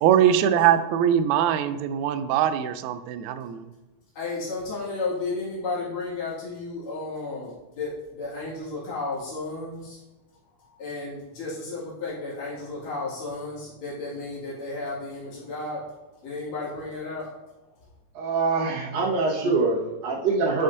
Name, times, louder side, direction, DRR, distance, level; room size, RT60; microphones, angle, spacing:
voice 1, 0.0-3.7 19.4-19.6, right 10 dB, 85° right, 10 dB, 1.6 m, -22 dB
voice 2, 4.2-10.0 10.8-15.9 16.2-17.3, left 3 dB, 75° left, -8 dB, 3.7 m, -33 dB
voice 3, 18.1-20.6, right 4 dB, 55° right, -4 dB, 2.3 m, -24 dB
10.0 x 5.5 x 2.7 m, 1.1 s
omnidirectional pair, 3.9 m